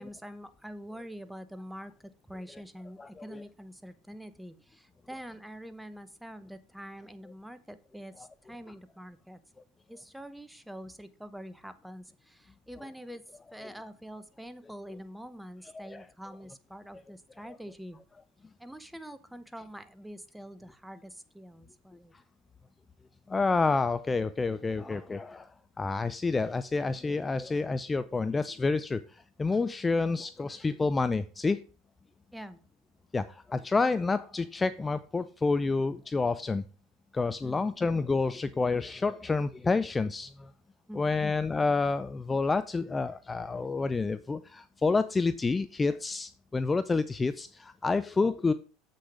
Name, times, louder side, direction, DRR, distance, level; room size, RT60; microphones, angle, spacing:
voice 1, 0.0-1.9 2.3-9.4 9.9-13.2 13.5-18.0 18.6-22.1 32.3-32.6 37.4-37.8 40.9-41.2, equal, 5° right, 12 dB, 0.9 m, -45 dB
voice 2, 23.3-25.5 25.8-31.6 33.1-36.6 37.1-40.5 41.0-48.5, left 3 dB, 20° left, 14 dB, 0.4 m, -29 dB
7.8 x 6.5 x 4.9 m, 0.37 s
hypercardioid pair, 90°, 0 cm